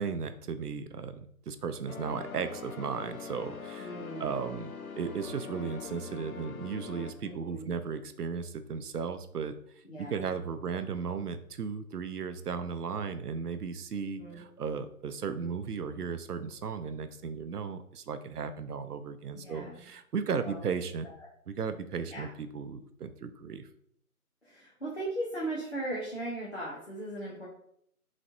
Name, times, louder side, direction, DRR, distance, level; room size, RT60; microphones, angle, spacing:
voice 1, 0.0-3.9 4.2-9.6 10.0-21.1 21.5-23.7, right 6 dB, 90° right, 11 dB, 0.6 m, -35 dB
sound 1, 1.9-7.1, left 5 dB, 65° left, 0.6 m, -43 dB
voice 2, 3.8-4.3 7.2-7.7 9.8-10.3 14.2-14.4 19.3-19.8 20.3-20.6 21.2-21.3 22.1-22.3 24.4-27.5, right 1 dB, 45° left, -7 dB, 0.9 m, -38 dB
4.1 x 3.1 x 2.6 m, 0.68 s
figure-of-eight pair, 180°, 45 cm